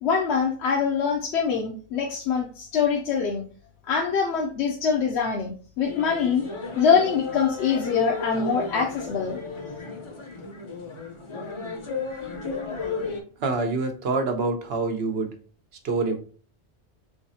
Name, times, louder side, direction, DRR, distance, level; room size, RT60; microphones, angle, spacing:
voice 1, 0.0-3.4 3.9-6.5 6.8-9.4, left 6 dB, 80° left, 0 dB, 0.9 m, -24 dB
sound 1, 5.8-13.2, left 4 dB, 35° left, 0.6 m, -33 dB
voice 2, 13.4-15.3 15.8-16.2, right 3 dB, 70° right, 6 dB, 1.0 m, -26 dB
3.4 x 3.1 x 2.7 m, 0.41 s
omnidirectional pair, 1.1 m